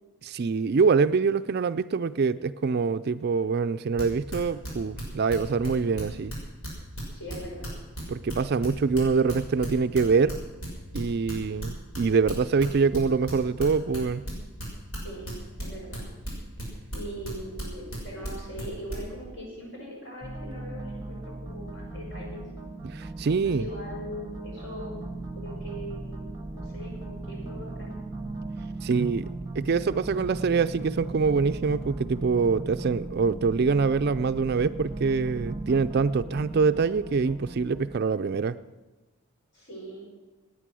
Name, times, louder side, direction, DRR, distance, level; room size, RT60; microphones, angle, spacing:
voice 1, 0.2-6.3 8.1-10.4 10.9-14.2 22.8-23.7 28.8-38.6, right 5 dB, 45° right, 12 dB, 0.4 m, -25 dB
sound 1, 4.0-5.7 6.0-10.0 10.3-14.0 14.2-18.9, right 1 dB, 70° left, 6.2 m, -35 dB
voice 2, 7.1-7.8 14.9-15.3 15.6-16.1 16.9-22.4 23.4-25.0 25.3-26.2 26.5-28.0 39.5-40.1, equal, 50° left, -2 dB, 5.7 m, -40 dB
sound 2, 20.2-38.0, right 2 dB, 15° right, 0.9 m, -38 dB
18.5 x 9.8 x 6.2 m, 1.2 s
head